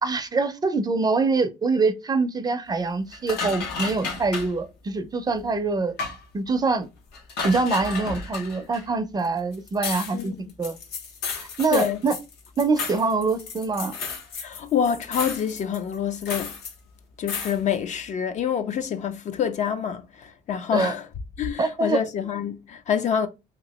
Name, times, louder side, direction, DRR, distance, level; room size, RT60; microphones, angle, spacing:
voice 1, 0.0-5.9 6.3-6.9 7.4-10.8 11.4-12.1 12.6-14.0 20.7-20.9 21.6-22.0, right 3 dB, 25° right, 0.4 m, -24 dB
sound 1, 3.1-4.6 5.4-5.5 6.0-6.2 7.1-8.9 9.2-9.3 9.5-14.6 14.8-16.7 17.3-17.6, left 4 dB, 75° left, 0.8 m, -33 dB
voice 2, 14.4-16.5 17.2-21.1 21.4-23.3, left 8 dB, 45° left, 0.4 m, -26 dB
2.9 x 2.5 x 2.9 m
cardioid pair, 110°, 17 cm